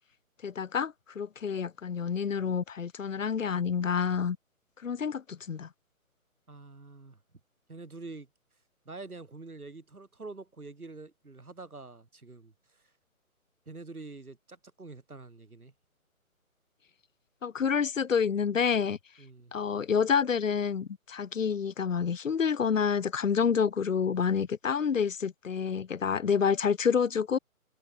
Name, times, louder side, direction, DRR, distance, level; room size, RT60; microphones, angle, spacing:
voice 1, 0.4-4.4 4.8-5.7 17.4-19.0 19.5-27.4, left 6 dB, 65° left, 0.8 m, -28 dB
voice 2, 6.5-7.2 7.7-8.3 8.8-12.8 13.7-15.7 19.2-19.5, right 3 dB, 85° right, 1.6 m, -46 dB
figure-of-eight pair, 140°, 43 cm